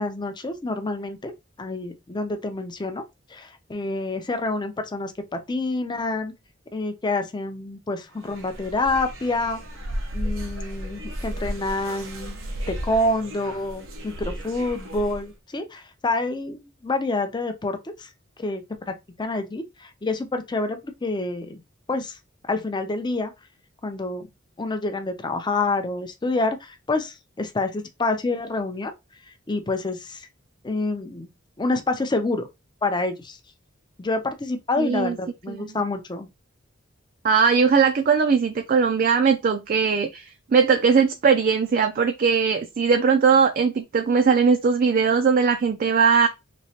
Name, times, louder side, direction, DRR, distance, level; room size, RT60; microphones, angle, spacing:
voice 1, 0.0-1.3 1.6-3.0 3.3-6.3 6.7-9.6 10.1-12.4 12.7-18.1 18.4-21.6 21.9-22.2 22.5-23.3 23.8-24.3 24.6-28.9 29.3-30.3 30.6-31.3 31.6-32.5 32.8-33.4 34.0-36.3, left 2 dB, 20° left, 0.5 m, -27 dB
sound 1, 8.1-15.3, equal, 70° right, 0.9 m, -34 dB
voice 2, 34.8-35.2 35.5-35.6 37.2-46.3, right 5 dB, 45° right, 0.4 m, -20 dB
3.2 x 3.0 x 2.8 m
head